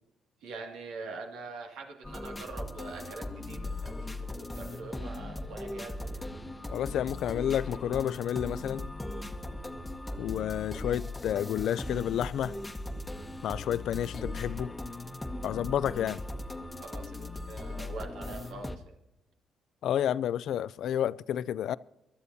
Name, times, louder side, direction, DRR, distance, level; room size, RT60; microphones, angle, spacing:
voice 1, 0.4-6.2 16.8-18.9, right 3 dB, 85° right, 2.1 m, -44 dB
sound 1, 2.0-18.8, left 2 dB, 10° left, 1.1 m, -39 dB
voice 2, 6.7-8.9 10.2-12.6 13.4-14.7 15.4-16.2 19.8-21.8, left 10 dB, 75° left, 0.4 m, -30 dB
25.0 x 12.5 x 2.7 m
cardioid pair, 90°, 0 cm